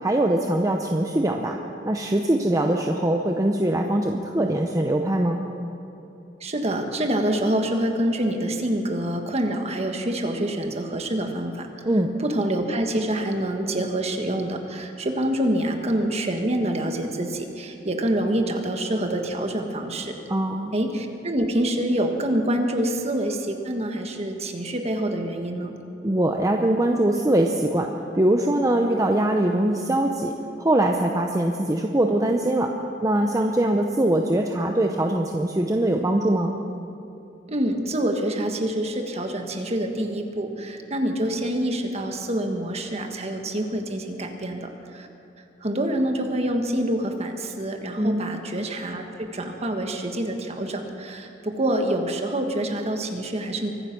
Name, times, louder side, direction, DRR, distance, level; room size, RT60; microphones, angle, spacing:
voice 1, 0.0-1.6 1.8-5.5 11.8-12.2 20.3-20.7 26.0-30.3 30.6-32.7 33.0-36.5 47.9-48.2, right 1 dB, 20° right, 2 dB, 0.7 m, -22 dB
voice 2, 6.4-11.7 12.2-20.2 20.7-25.7 37.5-45.1 45.6-53.7, right 1 dB, 35° right, 4 dB, 1.5 m, -26 dB
24.0 x 9.8 x 6.0 m, 2.8 s
head